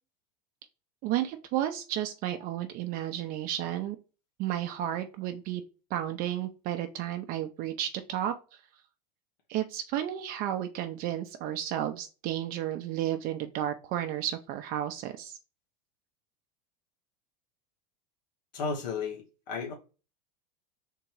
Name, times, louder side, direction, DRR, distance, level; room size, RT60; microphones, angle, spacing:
voice 1, 1.0-4.0 4.4-5.6 5.9-8.3 9.5-15.4, right 12 dB, 45° right, 0.5 m, -32 dB
voice 2, 18.5-19.7, left 5 dB, 85° left, 1.1 m, -34 dB
3.7 x 2.9 x 4.4 m
supercardioid pair, 135°, 21 cm